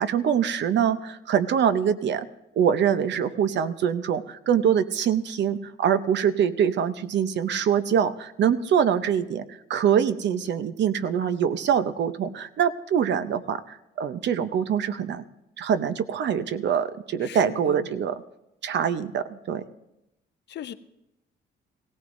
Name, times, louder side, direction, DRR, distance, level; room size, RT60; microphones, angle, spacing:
voice 1, 0.0-2.3 2.6-15.2 15.6-18.1 18.6-19.6, right 8 dB, 65° right, 11 dB, 0.7 m, -24 dB
voice 2, 17.2-17.9 20.5-20.7, left 10 dB, 60° left, 12 dB, 0.7 m, -38 dB
18.0 x 16.5 x 2.6 m, 0.89 s
cardioid pair, 90°, 20 cm